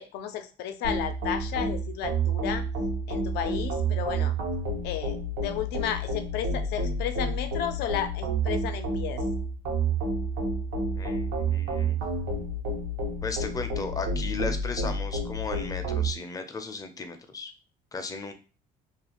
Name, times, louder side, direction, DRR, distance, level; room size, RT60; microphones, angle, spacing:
voice 1, 0.0-2.6 3.1-4.3 4.8-9.2, left 9 dB, 80° left, 8 dB, 0.5 m, -33 dB
sound 1, 0.8-16.1, right 2 dB, 90° right, 0.9 m, -29 dB
voice 2, 11.0-12.0 13.2-17.5 17.9-18.3, left 3 dB, 20° left, 7 dB, 0.4 m, -35 dB
2.4 x 2.3 x 2.8 m, 0.33 s
cardioid pair, 110°, 17 cm